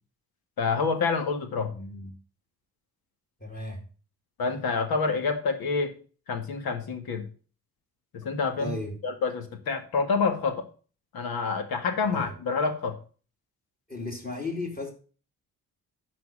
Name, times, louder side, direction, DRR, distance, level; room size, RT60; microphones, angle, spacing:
voice 1, 0.6-1.7 4.4-5.9 6.3-7.3 8.1-8.7 9.0-10.6 11.1-13.0, left 4 dB, 85° left, 2.1 m, -27 dB
voice 2, 1.7-2.1 3.4-3.8 8.6-9.0 12.1-12.3 13.9-14.9, left 2 dB, 25° left, 3.0 m, -35 dB
10.5 x 4.7 x 7.4 m
cardioid pair, 90°, 35 cm